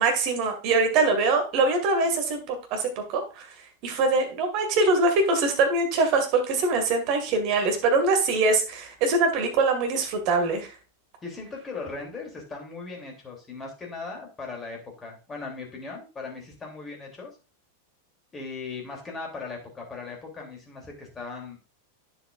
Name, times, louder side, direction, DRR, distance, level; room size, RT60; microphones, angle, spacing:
voice 1, 0.0-3.5 3.8-10.7, right 3 dB, 45° right, 4 dB, 2.1 m, -23 dB
voice 2, 11.2-17.3 18.3-21.6, left 4 dB, 20° left, 1 dB, 3.1 m, -38 dB
9.9 x 7.1 x 2.5 m, 0.32 s
figure-of-eight pair, 90°, 0 cm